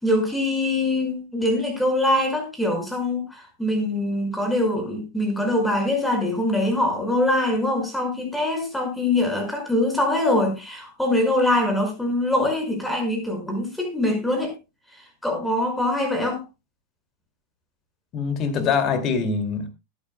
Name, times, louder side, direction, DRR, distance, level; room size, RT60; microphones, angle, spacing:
voice 1, 0.0-14.5 15.2-16.4, left 1 dB, 5° left, 5.2 m, -23 dB
voice 2, 18.1-19.7, left 5 dB, 35° left, 2.3 m, -23 dB
20.0 x 9.4 x 2.2 m
figure-of-eight pair, 90°, 0 cm